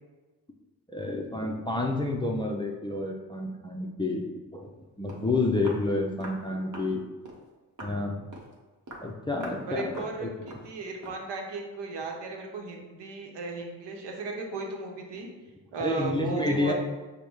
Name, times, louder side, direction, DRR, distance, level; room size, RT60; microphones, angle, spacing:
voice 1, 0.9-4.7 5.0-7.0 7.8-8.3 9.0-9.9 10.2-10.3 15.8-16.7, left 2 dB, 10° left, 0 dB, 0.5 m, -29 dB
Walk footsteps, 4.8-4.9 5.1-5.3 5.6-5.9 6.2-6.4 6.7-6.9 7.2-7.4 7.8-8.0 8.3-8.5 8.9-9.1 9.4-9.6 9.9-10.2 10.5-10.7 11.0-11.2, right 1 dB, 45° right, 1.1 m, -43 dB
voice 2, 9.7-15.3 15.7-16.7, right 3 dB, 75° right, 2 dB, 0.9 m, -35 dB
5.1 x 2.2 x 4.6 m, 1.3 s
cardioid pair, 75°, 41 cm